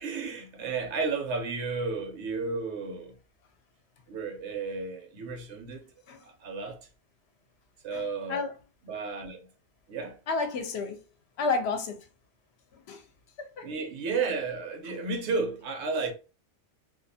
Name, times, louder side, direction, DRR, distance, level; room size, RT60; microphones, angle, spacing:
voice 1, 0.0-3.2 4.1-5.8 6.2-6.8 7.8-8.5 8.8-9.5 9.9-10.2 13.6-16.1, right 4 dB, 75° right, 0.8 m, -32 dB
voice 2, 10.3-11.0 11.4-12.0 12.9-13.0 13.6-13.7, left 4 dB, 70° left, 0.8 m, -30 dB
2.4 x 2.3 x 2.5 m
omnidirectional pair, 1.2 m